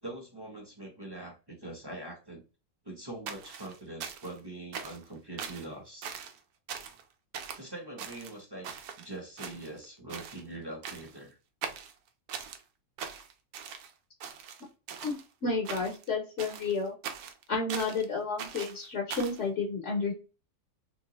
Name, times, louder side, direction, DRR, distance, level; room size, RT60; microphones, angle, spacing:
voice 1, 0.0-2.4 2.8-6.2 7.6-8.7 9.0-11.4, right 2 dB, 20° right, 0 dB, 0.7 m, -43 dB
sound 1, 3.3-4.4 4.7-5.1 5.4-5.7 6.0-6.4 6.7-7.0 7.3-7.6 8.0-9.1 9.4-9.8 10.1-10.4 10.8-11.2 11.6-12.6 13.0-13.9 14.2-15.2 15.6-16.1 16.4-18.0 18.4-19.4, right 7 dB, 90° right, 1.1 m, -41 dB
voice 2, 15.0-16.9 17.5-20.1, left 4 dB, 60° left, 0 dB, 1.0 m, -31 dB
3.3 x 2.9 x 2.9 m, 0.33 s
omnidirectional pair, 1.5 m